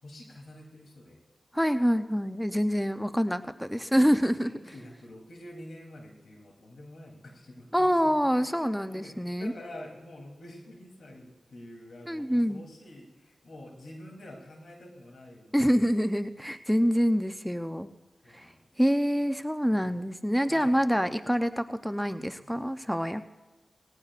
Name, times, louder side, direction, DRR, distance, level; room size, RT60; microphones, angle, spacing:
voice 1, 0.0-1.2 4.4-8.1 8.4-8.5 8.9-16.0 18.2-18.6 19.7-20.0 20.5-20.8 22.2-22.6, left 1 dB, 85° left, 0 dB, 3.2 m, -47 dB
voice 2, 1.5-4.5 7.7-9.5 12.1-12.6 15.5-17.9 18.3-18.5 18.8-23.2, equal, ahead, 9 dB, 0.6 m, -26 dB
19.0 x 17.5 x 2.5 m, 1.2 s
cardioid pair, 45°, 0 cm